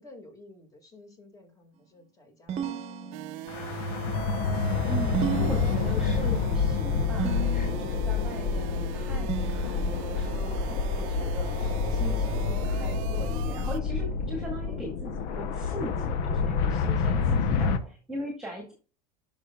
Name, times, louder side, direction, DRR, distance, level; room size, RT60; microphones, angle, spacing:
voice 1, 0.0-3.1 14.6-15.1 17.3-17.9, left 2 dB, 20° left, 5 dB, 2.1 m, -53 dB
sound 1, 2.5-3.7 5.1-6.3 7.2-8.1 9.3-10.3, right 7 dB, 35° right, 0.9 m, -34 dB
sound 2, 3.1-13.8, right 14 dB, 75° right, 0.6 m, -41 dB
sound 3, 3.5-17.8, left 5 dB, 60° left, 0.8 m, -28 dB
voice 2, 4.6-18.7, equal, 5° right, 0 dB, 1.9 m, -40 dB
11.0 x 5.5 x 2.3 m, 0.38 s
supercardioid pair, 135°, 18 cm